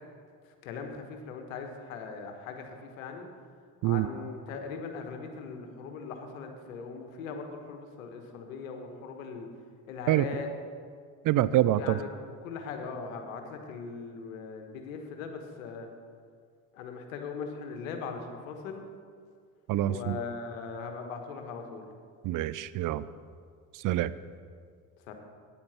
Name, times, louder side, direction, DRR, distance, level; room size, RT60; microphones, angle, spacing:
voice 1, 0.6-3.3 3.8-9.5 9.9-10.5 11.3-15.9 16.7-18.9 19.9-21.9 25.1-25.2, left 5 dB, 85° left, 5 dB, 1.3 m, -40 dB
voice 2, 11.2-12.0 19.7-20.2 22.2-23.1 23.8-24.1, right 14 dB, 55° right, 16 dB, 0.5 m, -26 dB
9.3 x 8.7 x 5.9 m, 2.1 s
hypercardioid pair, 60°, 40 cm